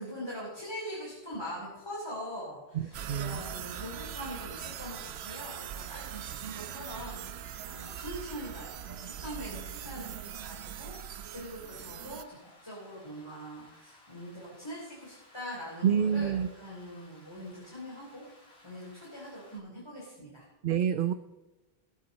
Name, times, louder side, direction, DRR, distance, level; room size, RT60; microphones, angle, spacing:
voice 1, 0.0-20.5, equal, 25° left, -5 dB, 3.5 m, -43 dB
voice 2, 2.7-3.4 15.8-16.5 20.6-21.1, right 8 dB, 60° right, 11 dB, 0.7 m, -27 dB
Rain, 2.9-19.6, left 1 dB, 85° left, 3.4 m, -59 dB
sound 1, 2.9-12.2, right 10 dB, 90° right, 0.9 m, -41 dB
20.5 x 8.3 x 4.1 m, 1.1 s
omnidirectional pair, 1.1 m